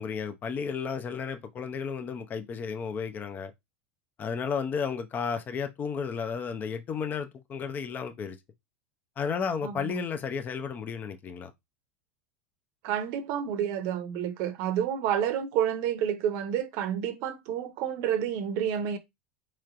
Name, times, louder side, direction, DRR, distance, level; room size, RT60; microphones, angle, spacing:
voice 1, 0.0-3.5 4.2-8.4 9.2-11.5, left 6 dB, 30° left, 0.6 m, -33 dB
voice 2, 9.6-10.0 12.8-19.0, right 9 dB, 55° right, 0.7 m, -29 dB
4.4 x 3.1 x 2.5 m
hypercardioid pair, 100°, 6 cm